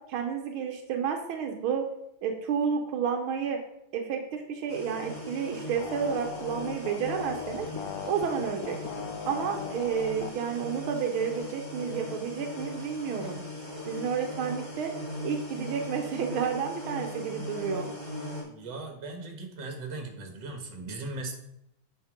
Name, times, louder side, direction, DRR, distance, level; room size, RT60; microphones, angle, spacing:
voice 1, 0.1-1.9 2.2-3.6 3.9-7.7 8.0-8.8 9.3-13.4 13.9-14.9 15.2-17.9, right 7 dB, 85° right, 4 dB, 1.7 m, -31 dB
sound 1, 4.7-18.4, left 1 dB, 50° left, 3.6 m, -39 dB
sound 2, 5.7-10.3 10.9-11.0, left 8 dB, 80° left, 0.8 m, -39 dB
voice 2, 18.4-21.3, right 2 dB, 60° right, 4 dB, 2.0 m, -38 dB
8.0 x 5.7 x 5.1 m, 0.80 s
omnidirectional pair, 2.2 m